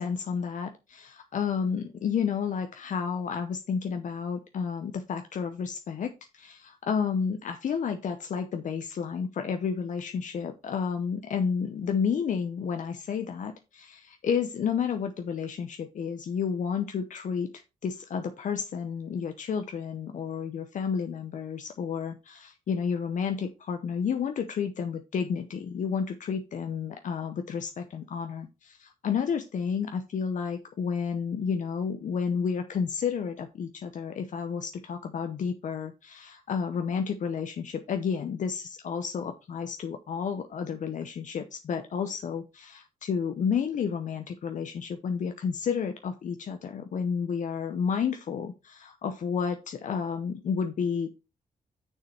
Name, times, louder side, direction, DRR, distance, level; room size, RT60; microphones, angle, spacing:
voice 1, 0.0-17.5 17.8-51.1, left 6 dB, 65° left, 6 dB, 0.8 m, -31 dB
6.6 x 6.4 x 4.4 m, 0.27 s
cardioid pair, 95°, 14 cm